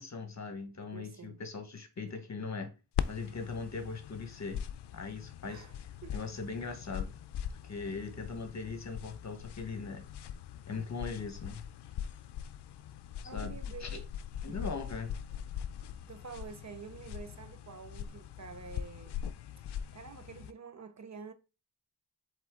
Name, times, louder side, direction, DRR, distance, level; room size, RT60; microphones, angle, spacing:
voice 1, 0.0-2.7 3.1-4.6 4.9-5.6 6.1-7.1 7.6-10.1 10.7-11.6 13.3-14.0 14.4-15.1, left 4 dB, 45° left, 1.2 m, -40 dB
voice 2, 0.9-1.4 5.5-6.2 13.2-14.1 14.5-14.7 16.0-19.1 19.9-21.3, right 5 dB, 45° right, 0.6 m, -48 dB
sound 1, 3.0-20.5, left 9 dB, 80° left, 0.5 m, -41 dB
8.0 x 3.7 x 3.7 m
wide cardioid pair, 125°, 40 cm